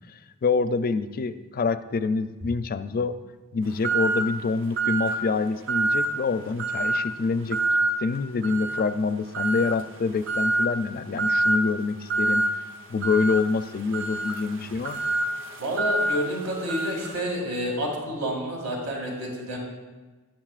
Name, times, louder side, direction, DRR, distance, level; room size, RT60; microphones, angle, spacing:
voice 1, 0.1-3.1 3.5-7.6 8.0-12.4 12.9-15.0, left 4 dB, 40° left, 11 dB, 0.4 m, -26 dB
sound 1, 3.8-4.3 4.8-5.2 5.7-6.2 6.6-7.0 7.5-7.9 8.4-8.9 9.3-9.8 10.3-10.7 11.2-11.6 12.1-12.5 13.0-17.2, right 2 dB, 60° right, 0.7 m, -26 dB
voice 2, 15.6-19.6, equal, 75° right, -1 dB, 2.3 m, -29 dB
13.5 x 10.5 x 2.5 m, 1.2 s
head